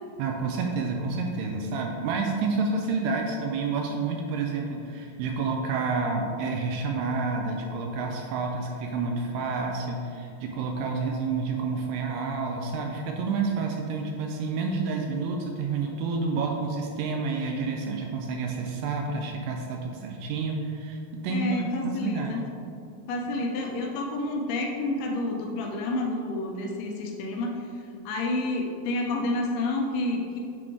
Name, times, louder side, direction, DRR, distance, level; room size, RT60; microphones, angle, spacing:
voice 1, 0.2-22.4, right 4 dB, 85° right, 2 dB, 2.3 m, -29 dB
voice 2, 21.3-22.5 23.1-27.6 28.1-30.4, left 2 dB, 80° left, 1 dB, 2.4 m, -29 dB
7.6 x 4.0 x 4.6 m, 2.5 s
omnidirectional pair, 5.1 m